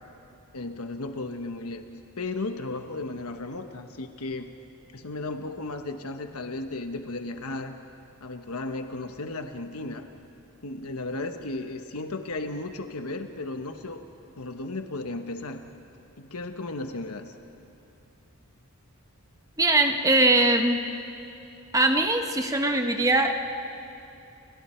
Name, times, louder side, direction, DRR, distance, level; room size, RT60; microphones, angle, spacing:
voice 1, 0.5-1.8 2.2-4.5 4.9-7.8 8.2-10.1 10.6-14.0 14.4-15.6 16.2-17.3, left 2 dB, 85° left, 6 dB, 1.2 m, -35 dB
voice 2, 19.6-20.8 21.7-23.3, right 2 dB, 15° right, 4 dB, 1.1 m, -21 dB
30.0 x 29.5 x 4.5 m, 2.7 s
head